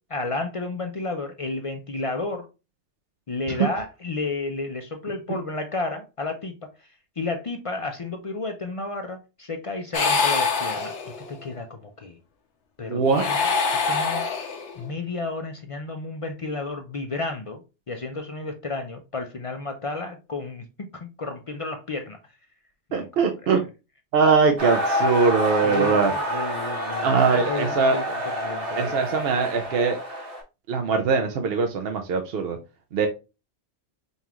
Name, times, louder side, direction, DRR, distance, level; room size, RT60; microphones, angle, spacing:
voice 1, 0.1-2.5 3.3-6.5 6.8-6.9 7.2-10.9 11.3-12.2 12.8-13.4 13.9-14.3 14.8-17.6 17.9-22.2 22.9-23.6 25.6-29.0, left 3 dB, 45° left, 0.4 m, -32 dB
sound 1, 9.9-11.4 13.0-14.9, left 4 dB, 80° left, 1.1 m, -25 dB
voice 2, 12.9-13.3 22.9-23.6 24.1-26.1 27.0-28.0 28.8-30.0 30.7-32.6 32.9-33.1, right 5 dB, 65° right, 0.8 m, -21 dB
sound 2, 24.6-30.4, equal, 80° right, 1.8 m, -28 dB
5.3 x 2.4 x 2.9 m
omnidirectional pair, 1.2 m